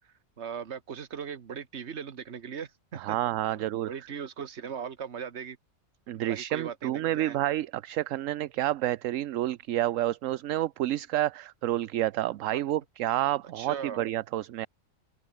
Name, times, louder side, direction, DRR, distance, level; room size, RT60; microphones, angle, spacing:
voice 1, 0.4-3.2 3.5-5.6 6.2-7.4 13.5-14.0, right 7 dB, 55° right, 1.5 m, -39 dB
voice 2, 2.9-3.9 6.1-14.7, right 14 dB, 70° right, 1.0 m, -29 dB
open air
omnidirectional pair, 1.4 m